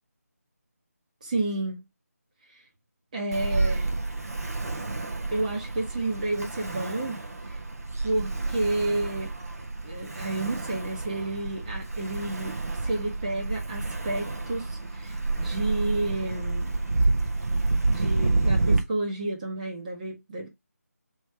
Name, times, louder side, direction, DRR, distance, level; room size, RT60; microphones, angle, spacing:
voice 1, 1.2-1.8 3.1-3.9 5.3-7.2 7.5-7.6 8.0-9.3 9.8-16.8 17.9-20.5, right 2 dB, 30° right, 1.1 m, -31 dB
Ocean, 3.3-18.8, right 2 dB, 65° right, 1.0 m, -29 dB
3.2 x 3.1 x 4.4 m
figure-of-eight pair, 155°, 9 cm